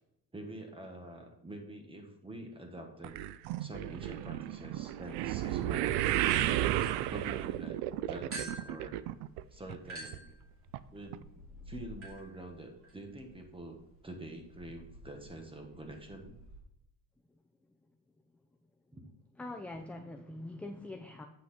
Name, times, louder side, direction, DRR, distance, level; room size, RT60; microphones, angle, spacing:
voice 1, 0.3-3.2 3.6-6.8 7.1-9.0 9.5-10.2 10.9-11.2 11.7-13.8 14.0-16.3 18.9-19.0, right 1 dB, 15° right, 4 dB, 1.4 m, -46 dB
sound 1, 3.0-9.4 9.7-10.2 10.7-10.8 11.1-11.2, right 14 dB, 90° right, 0.5 m, -33 dB
sound 2, 6.2-7.6 8.3-16.6, right 1 dB, 35° right, 2.5 m, -49 dB
voice 2, 19.4-21.3, left 2 dB, 5° left, 3 dB, 0.4 m, -43 dB
8.0 x 6.0 x 4.3 m, 0.82 s
cardioid pair, 130°, 39 cm